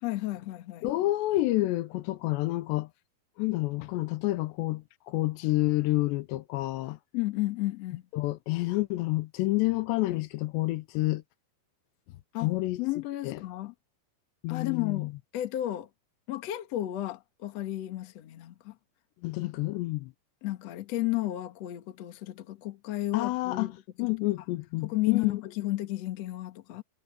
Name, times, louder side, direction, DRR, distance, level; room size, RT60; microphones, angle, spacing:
voice 1, 0.0-0.9 7.1-8.0 12.3-12.5 12.8-13.7 14.5-15.9 16.3-18.7 19.4-19.5 20.4-23.7 24.8-26.8, left 16 dB, 65° left, 1.6 m, -33 dB
voice 2, 0.8-2.9 3.4-7.0 8.1-11.2 12.4-12.8 13.2-13.4 14.4-15.1 19.2-20.1 23.1-25.4, left 19 dB, 85° left, 2.8 m, -29 dB
omnidirectional pair, 5.2 m